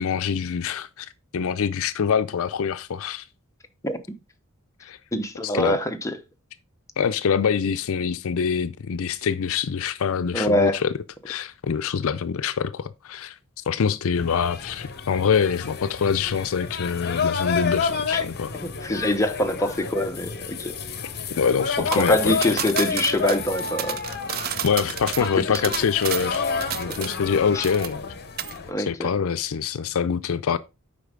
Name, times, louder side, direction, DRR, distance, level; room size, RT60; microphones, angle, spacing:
voice 1, 0.0-3.2 4.8-5.0 5.4-5.8 7.0-10.9 11.3-13.3 13.7-18.5 21.3-22.3 24.6-28.0 28.9-30.6, left 6 dB, 70° left, 0.4 m, -25 dB
voice 2, 5.1-6.2 10.3-10.8 18.1-18.2 18.6-20.7 21.8-24.0 25.2-25.6 27.5-27.6 28.7-29.1, left 1 dB, 15° left, 0.8 m, -24 dB
sound 1, 14.2-28.7, left 5 dB, 50° left, 0.9 m, -30 dB
sound 2, 21.9-27.4 27.6-28.1 28.4-28.6, right 10 dB, 45° right, 0.5 m, -31 dB
8.4 x 5.2 x 3.7 m
head